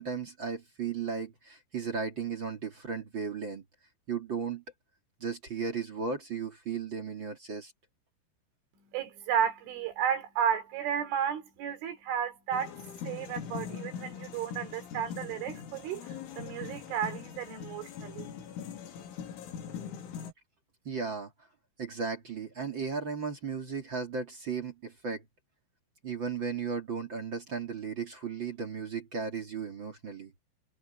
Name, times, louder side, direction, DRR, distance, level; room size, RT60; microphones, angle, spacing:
voice 1, 0.0-3.6 4.1-4.6 5.2-7.7 20.8-21.3 21.8-25.2 26.0-30.3, right 5 dB, 35° right, 2.0 m, -35 dB
voice 2, 8.9-12.7 13.0-16.1 16.4-18.3, right 8 dB, 85° right, 5.9 m, -33 dB
sound 1, 12.5-20.3, left 7 dB, 90° left, 5.1 m, -42 dB
omnidirectional pair, 5.4 m